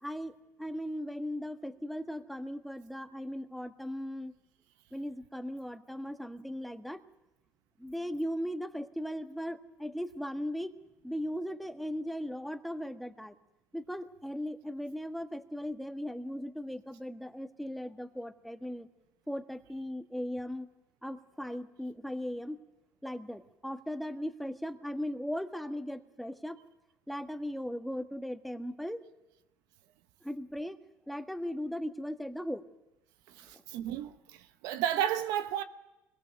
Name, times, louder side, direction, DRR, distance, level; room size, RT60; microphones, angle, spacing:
voice 1, 0.0-4.3 4.9-7.0 7.8-10.7 11.0-13.3 13.7-18.9 19.3-20.7 21.0-22.6 23.0-26.6 27.1-29.0 30.2-30.8 31.1-32.6 33.5-33.6, equal, ahead, 1.5 m, -38 dB
voice 2, 33.3-35.6, right 11 dB, 75° right, 0.9 m, -33 dB
24.0 x 22.0 x 6.7 m
supercardioid pair, 75°, 7 cm